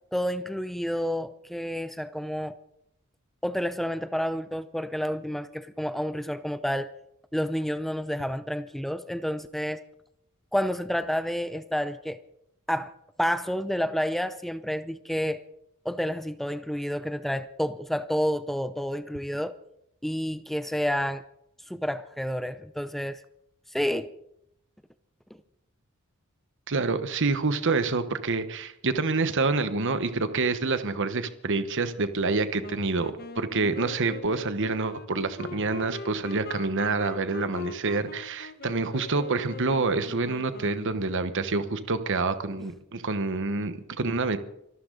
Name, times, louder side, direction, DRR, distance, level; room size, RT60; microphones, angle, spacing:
voice 1, 0.1-2.5 3.4-6.9 7.3-9.8 10.5-12.2 12.7-12.9 13.2-15.4 15.8-19.5 20.0-21.2 21.7-23.2 23.7-24.1, equal, ahead, 12 dB, 0.5 m, -29 dB
voice 2, 26.7-44.4, right 3 dB, 60° right, 11 dB, 1.1 m, -27 dB
Wind instrument woodwind instrument, 32.6-41.0, left 3 dB, 45° left, 0.8 m, -42 dB
25.5 x 13.0 x 3.9 m, 0.78 s
head